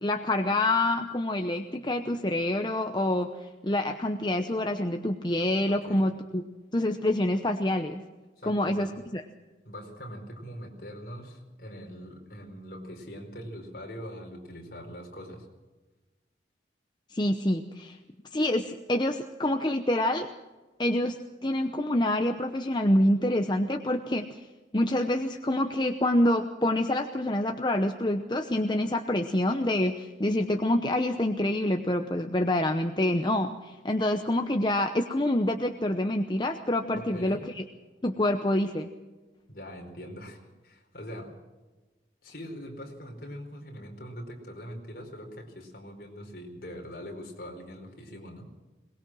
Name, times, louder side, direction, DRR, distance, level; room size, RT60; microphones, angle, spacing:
voice 1, 0.0-6.4 6.7-8.0 8.4-9.2 17.1-18.0 18.3-20.3 20.8-24.5 24.7-37.6 38.0-38.9, left 1 dB, 25° left, 5 dB, 0.8 m, -27 dB
voice 2, 5.7-6.1 8.4-9.0 9.6-15.5 36.9-37.4 39.5-41.3 42.2-48.5, equal, 55° left, 2 dB, 4.7 m, -42 dB
22.5 x 20.0 x 6.2 m, 1.2 s
head